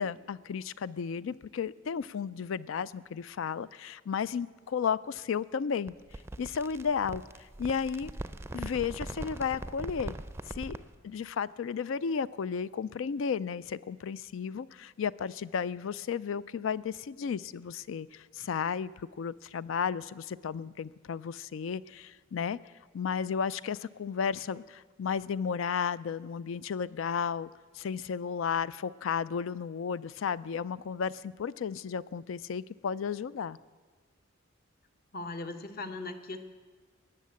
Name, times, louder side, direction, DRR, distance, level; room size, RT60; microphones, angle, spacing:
voice 1, 0.0-5.9 6.4-7.2 7.6-8.1 8.5-10.1 10.5-22.6 22.9-27.5 27.7-33.6, left 6 dB, 80° left, 18 dB, 0.4 m, -33 dB
sound 1, 5.9-10.9, right 1 dB, 15° right, 0.5 m, -41 dB
voice 2, 35.1-36.4, left 2 dB, 50° left, 8 dB, 1.1 m, -38 dB
19.0 x 6.6 x 8.4 m, 1.4 s
head